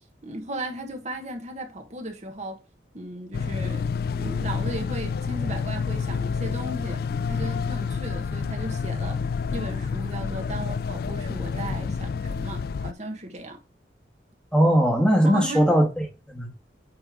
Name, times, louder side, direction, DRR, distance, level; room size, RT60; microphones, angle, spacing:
voice 1, 0.2-2.6 2.9-3.9 4.2-7.0 7.3-9.2 9.5-13.6 15.2-15.8, right 1 dB, 40° right, 1.4 m, -35 dB
sound 1, 3.3-12.9, left 5 dB, 60° left, 0.3 m, -29 dB
voice 2, 14.5-16.5, equal, 5° left, 1.8 m, -20 dB
9.0 x 3.4 x 4.7 m
head